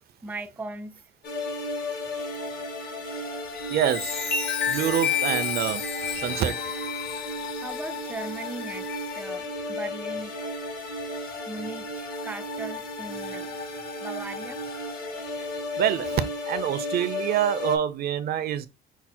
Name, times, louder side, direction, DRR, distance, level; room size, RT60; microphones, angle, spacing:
voice 1, 0.2-1.0 7.6-10.4 11.5-13.5 14.0-14.6, right 2 dB, 10° right, 0.4 m, -38 dB
sound 1, 1.2-17.8, left 2 dB, 65° left, 1.7 m, -34 dB
Chime, 3.5-9.4 10.0-10.3, left 7 dB, 85° left, 1.2 m, -31 dB
voice 2, 3.7-4.3 4.7-6.7 15.8-18.7, right 10 dB, 65° right, 0.7 m, -26 dB
5.9 x 2.1 x 4.3 m
cardioid pair, 110°, 17 cm